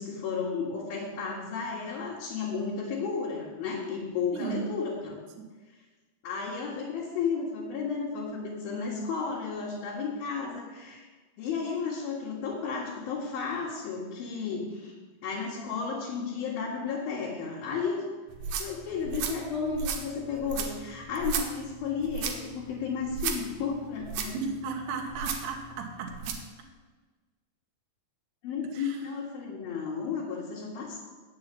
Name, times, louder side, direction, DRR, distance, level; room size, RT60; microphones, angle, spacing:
voice 1, 0.0-5.2 6.2-11.1 11.4-14.9 15.2-18.0 18.6-24.4 28.4-31.1, left 5 dB, 70° left, -6 dB, 3.4 m, -33 dB
voice 2, 4.3-4.6 5.4-5.5 24.3-26.3 28.7-29.0, right 5 dB, 60° right, 2 dB, 2.3 m, -35 dB
sound 1, 18.3-26.5, right 6 dB, 75° right, 2.9 m, -36 dB
8.5 x 7.1 x 8.4 m, 1.3 s
omnidirectional pair, 4.5 m